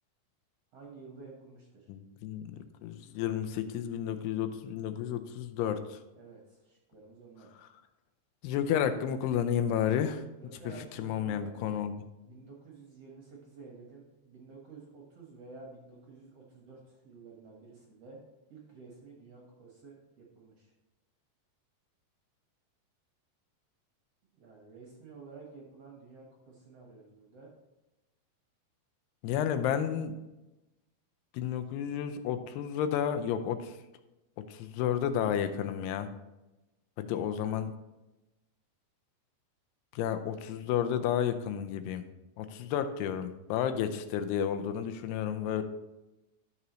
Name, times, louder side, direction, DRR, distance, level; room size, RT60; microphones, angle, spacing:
voice 1, 0.7-1.9 6.2-7.5 10.4-11.8 12.2-18.2 18.5-20.7 24.3-27.5, right 4 dB, 60° right, -2 dB, 1.7 m, -51 dB
voice 2, 1.9-2.5 2.8-6.0 8.4-10.2 11.0-11.9 29.2-30.1 31.3-33.7 34.5-36.1 37.0-37.7 39.9-42.0 42.4-45.6, left 9 dB, 85° left, 9 dB, 2.6 m, -31 dB
12.0 x 6.7 x 3.1 m, 1.0 s
omnidirectional pair, 4.7 m